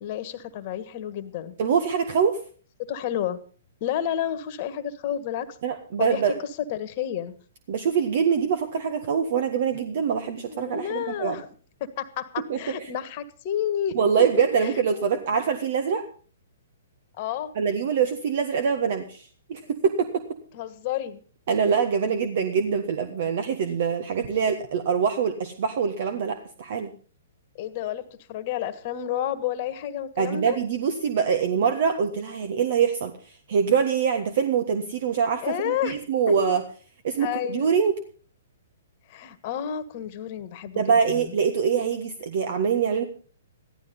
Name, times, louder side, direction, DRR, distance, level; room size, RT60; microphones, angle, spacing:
voice 1, 0.0-1.5 2.8-3.4 3.8-5.6 6.0-6.3 6.7-7.3 10.5-11.5 11.8-14.0 14.6-15.2 17.2-17.5 20.5-21.2 27.6-30.6 35.4-36.0 37.2-37.7 39.1-40.8 41.1-41.2, left 10 dB, 45° left, 12 dB, 1.5 m, -30 dB
voice 2, 1.6-2.4 5.6-6.3 7.7-11.4 12.5-12.6 13.9-16.1 17.5-20.2 21.5-26.9 30.2-33.1 33.5-36.6 37.0-37.9 40.7-43.0, right 6 dB, 55° right, 8 dB, 1.5 m, -24 dB
14.5 x 12.0 x 5.4 m, 0.41 s
hypercardioid pair, 125°, 0 cm